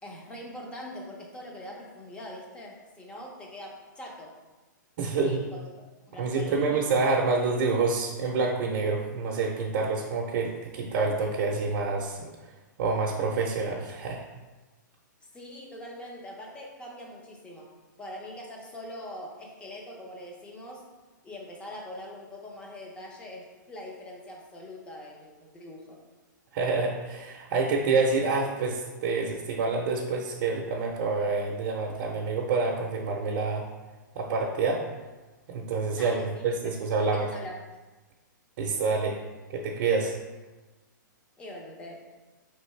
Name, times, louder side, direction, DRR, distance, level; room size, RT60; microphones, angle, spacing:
voice 1, 0.0-4.3 5.0-5.7 6.1-6.8 15.2-20.8 21.2-26.0 35.9-37.6 41.4-42.0, left 1 dB, 10° left, -1 dB, 0.6 m, -43 dB
voice 2, 5.0-5.4 6.1-12.3 12.8-14.2 26.5-33.7 34.1-34.8 35.5-37.3 38.6-39.2 39.5-40.1, right 4 dB, 45° right, -1 dB, 0.6 m, -27 dB
5.1 x 3.3 x 3.1 m, 1.2 s
hypercardioid pair, 150°, 11 cm